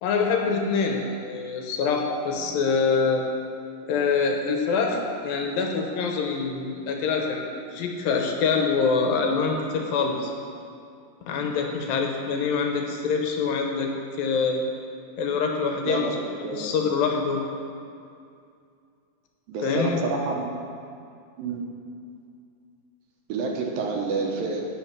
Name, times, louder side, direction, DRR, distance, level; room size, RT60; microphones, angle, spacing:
voice 1, 0.0-3.3 3.9-7.4 7.7-10.3 11.3-13.9 14.2-14.6 15.2-16.2 16.5-17.4 19.6-20.0, left 5 dB, 75° left, 2 dB, 2.4 m, -25 dB
voice 2, 15.9-16.8 19.5-20.5 21.4-21.6 23.3-24.7, right 4 dB, 75° right, 1 dB, 2.5 m, -29 dB
8.6 x 8.6 x 5.9 m, 2.4 s
omnidirectional pair, 4.4 m